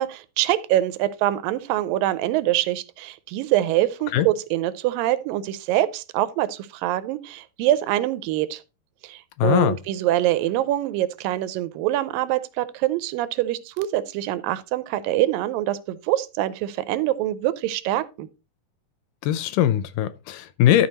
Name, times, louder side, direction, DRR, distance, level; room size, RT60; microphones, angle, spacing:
voice 1, 0.0-8.6 9.0-18.3, right 14 dB, 85° right, 2.3 m, -24 dB
voice 2, 9.4-9.8 19.2-20.9, left 12 dB, 80° left, 2.1 m, -20 dB
12.5 x 4.6 x 4.0 m
omnidirectional pair, 4.1 m